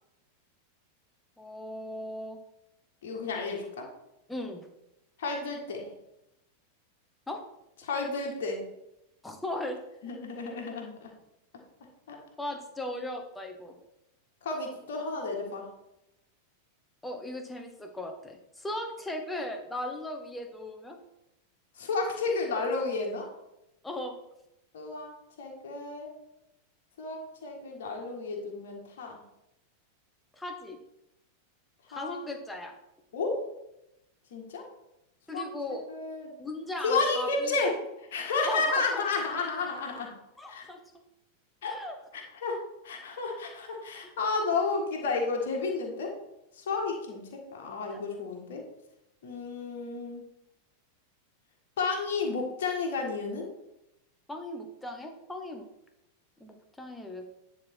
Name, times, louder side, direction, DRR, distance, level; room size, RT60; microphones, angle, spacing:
voice 1, 1.4-2.4 4.3-4.7 7.3-7.4 9.2-9.8 12.4-13.8 17.0-21.0 23.8-24.2 30.3-30.8 31.9-32.7 35.3-35.8 36.4-37.6 38.4-39.1 40.4-40.8 41.7-42.0 47.9-48.0 54.3-55.6 56.4-57.3, left 1 dB, 5° left, 4 dB, 1.1 m, -37 dB
voice 2, 3.0-3.9 5.2-5.9 7.8-8.6 10.0-11.1 12.1-12.2 14.4-15.7 21.8-23.3 24.7-25.1 25.4-26.1 27.0-29.2 31.9-32.3 33.1-33.5 34.3-34.7 35.3-35.5 35.9-36.3 36.8-40.1 40.5-40.7 41.6-41.8 42.1-46.1 46.5-48.6 49.2-50.2 51.8-53.5, left 3 dB, 55° left, 0 dB, 1.6 m, -32 dB
9.7 x 4.2 x 4.5 m, 0.88 s
figure-of-eight pair, 90°, 0 cm